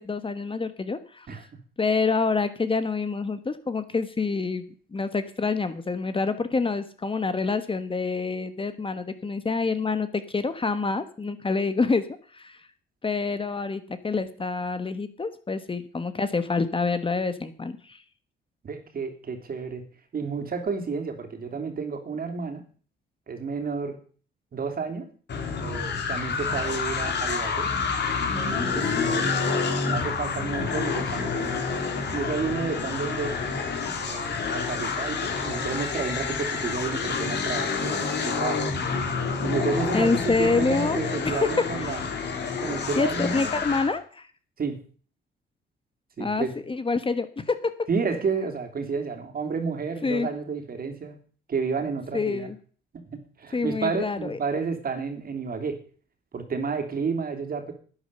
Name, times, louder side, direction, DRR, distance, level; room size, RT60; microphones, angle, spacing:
voice 1, 0.0-1.3 1.8-4.6 4.9-12.1 12.3-12.6 13.0-18.0 39.9-41.0 41.2-42.0 43.0-44.3 46.2-47.7 50.0-50.3 52.1-52.6 53.5-54.4, left 4 dB, 25° left, 11 dB, 1.3 m, -27 dB
voice 2, 18.6-19.8 20.1-22.6 23.3-24.0 24.5-25.1 25.6-27.7 28.4-31.7 32.1-33.4 34.1-38.6 39.4-42.0 42.6-43.7 44.6-44.8 46.2-46.5 47.9-51.2 51.5-52.5 52.9-55.8 56.3-57.7, right 5 dB, 50° right, 6 dB, 3.1 m, -31 dB
sound 1, 25.3-43.9, left 5 dB, 60° left, 3.4 m, -28 dB
11.5 x 9.7 x 6.8 m, 0.42 s
cardioid pair, 90°, 20 cm